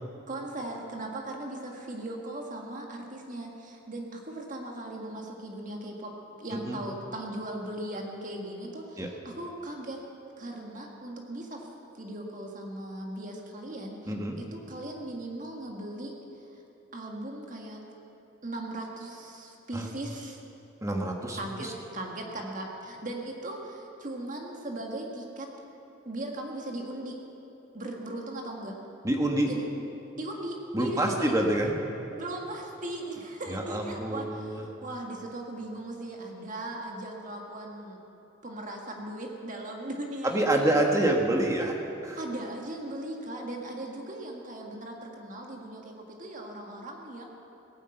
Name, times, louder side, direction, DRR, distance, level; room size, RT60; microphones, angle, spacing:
voice 1, 0.3-10.0 10.4-11.7 11.9-16.6 16.9-17.8 18.4-20.4 21.4-25.5 26.1-27.2 27.7-28.7 29.4-29.8 30.1-31.4 32.1-38.0 38.4-40.7 42.2-47.2, right 1 dB, 40° right, 1 dB, 1.8 m, -38 dB
voice 2, 14.1-14.4 19.7-19.8 20.8-21.7 29.0-29.5 30.7-31.8 33.5-34.7 40.2-41.7 42.0-42.2, right 1 dB, 15° right, 1 dB, 1.3 m, -27 dB
17.5 x 10.0 x 7.9 m, 2.9 s
head